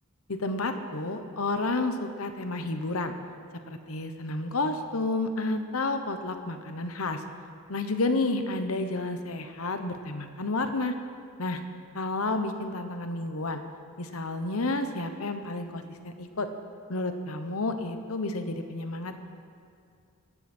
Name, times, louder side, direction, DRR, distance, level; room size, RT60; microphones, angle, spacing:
voice 1, 0.3-3.1 3.7-7.2 7.7-10.9 11.4-11.6 11.9-13.6 14.0-16.5 16.9-19.2, left 2 dB, 75° left, 7 dB, 1.1 m, -30 dB
18.0 x 14.0 x 4.5 m, 2.3 s
head